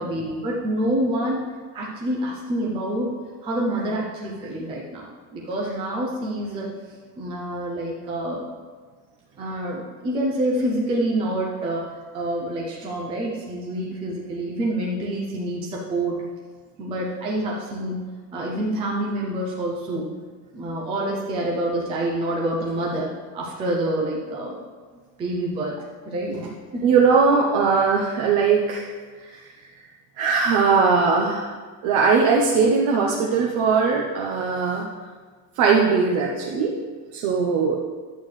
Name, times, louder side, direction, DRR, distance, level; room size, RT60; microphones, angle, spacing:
voice 1, 0.0-1.5 1.7-3.1 3.4-5.1 5.3-8.4 9.4-16.2 16.8-18.0 18.3-20.1 20.5-24.6 25.2-25.8 26.1-26.4 26.7-26.9, right 1 dB, 10° right, -3 dB, 0.4 m, -27 dB
voice 2, 26.8-28.9 29.3-29.4 30.2-31.5 31.8-34.8 35.6-36.7 37.1-37.8, right 5 dB, 45° right, -2 dB, 0.8 m, -20 dB
11.0 x 8.3 x 3.2 m, 1.5 s
cardioid pair, 180°, 47 cm